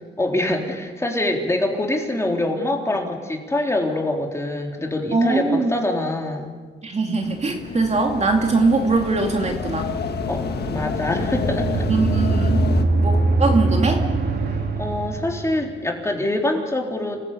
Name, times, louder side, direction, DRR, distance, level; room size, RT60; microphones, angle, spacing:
voice 1, 0.0-6.6 10.3-11.9 14.5-17.2, left 1 dB, 15° left, 1 dB, 3.9 m, -25 dB
voice 2, 5.1-5.7 6.8-9.9 11.9-12.6 13.0-14.0, right 3 dB, 35° right, 2 dB, 2.7 m, -21 dB
sound 1, 7.2-12.9, left 7 dB, 55° left, 1.6 m, -29 dB
sound 2, 8.7-15.7, right 3 dB, 55° right, 3.7 m, -23 dB
27.5 x 15.0 x 8.5 m, 1.5 s
cardioid pair, 90°, 20 cm